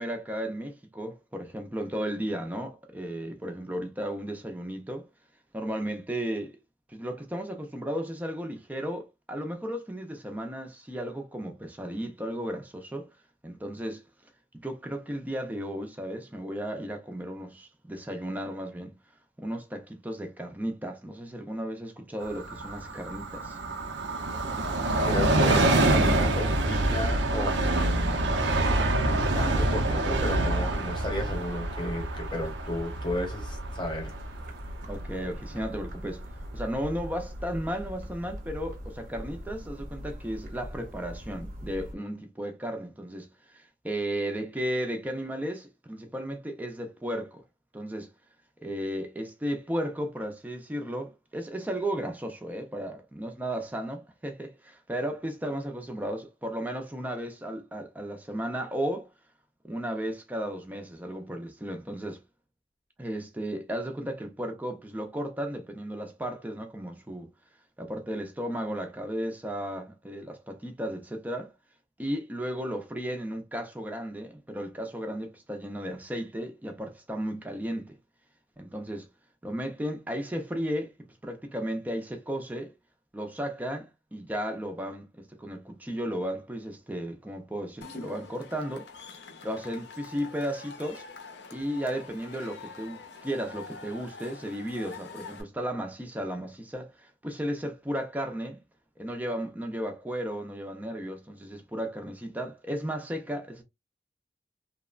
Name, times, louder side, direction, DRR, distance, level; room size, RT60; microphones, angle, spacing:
voice 1, 0.0-5.1 5.5-6.6 6.9-13.1 13.4-14.0 14.6-18.9 19.4-23.6 34.9-36.3 36.5-47.4 47.7-48.1 48.6-59.1 59.6-62.2 63.0-67.3 67.8-71.5 72.0-78.0 78.6-79.1 79.4-80.9 81.2-82.7 83.1-88.9 89.4-91.0 91.5-98.6 99.0-103.6, equal, 10° right, 0.4 m, -34 dB
Train, 22.2-35.5 35.9-36.0, right 2 dB, 85° right, 0.6 m, -26 dB
voice 2, 25.0-28.4 29.3-34.2, left 1 dB, 25° left, 0.8 m, -34 dB
sound 1, 27.0-42.0, equal, 50° right, 0.6 m, -41 dB
Cheering / Crowd, 87.8-95.4, left 4 dB, 80° left, 0.6 m, -45 dB
2.9 x 2.1 x 2.3 m
head